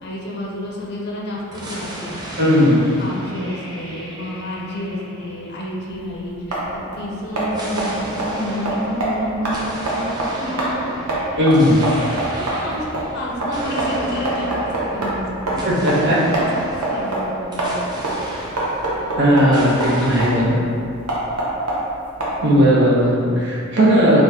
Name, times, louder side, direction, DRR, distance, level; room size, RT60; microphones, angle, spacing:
voice 1, 0.0-2.4 2.9-11.4 12.3-15.5 16.2-18.0 18.9-20.7, equal, 50° left, -4 dB, 0.5 m, -30 dB
sound 1, 1.5-6.2 7.5-19.2 19.5-20.6, right 1 dB, 20° right, 0.4 m, -34 dB
voice 2, 2.4-2.8 11.4-11.8 15.6-16.2 19.2-20.5 22.4-24.2, equal, 50° right, -6 dB, 0.7 m, -16 dB
sound 2, 5.9-22.7, right 1 dB, 85° right, 0.7 m, -26 dB
3.7 x 2.4 x 2.8 m, 2.4 s
head